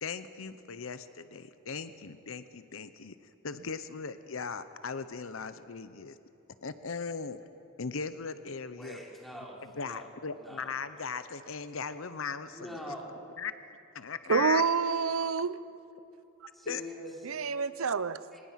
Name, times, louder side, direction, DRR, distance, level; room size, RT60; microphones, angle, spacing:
voice 1, 0.0-3.2 3.4-6.2 6.6-7.4 7.8-9.0 9.8-12.8 13.4-13.5 13.9-14.6 16.7-16.8, left 5 dB, 75° left, 12 dB, 0.8 m, -38 dB
voice 2, 8.7-10.8 12.5-13.2 16.5-17.3 18.3-18.4, equal, ahead, -3 dB, 3.8 m, -44 dB
voice 3, 14.3-15.6 17.2-18.2, right 5 dB, 90° right, 15 dB, 0.7 m, -27 dB
25.0 x 20.0 x 5.8 m, 2.8 s
head